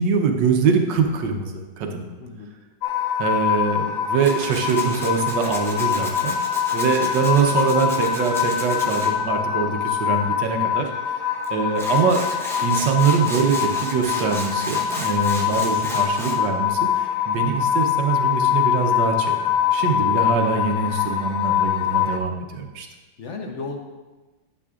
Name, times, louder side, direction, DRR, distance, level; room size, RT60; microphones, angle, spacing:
voice 1, 0.0-1.5 1.8-2.1 3.2-6.4 6.7-10.9 11.5-12.3 12.6-22.9, right 5 dB, 65° right, 3 dB, 1.4 m, -23 dB
voice 2, 2.2-2.5 19.8-20.1 23.2-23.8, left 3 dB, 55° left, 3 dB, 0.8 m, -34 dB
sound 1, 2.8-22.2, left 9 dB, 85° left, 1.5 m, -24 dB
Tools, 4.2-9.1 11.4-11.5 11.7-16.4, equal, 5° left, 0.4 m, -34 dB
11.0 x 7.8 x 2.4 m, 1.2 s
omnidirectional pair, 2.2 m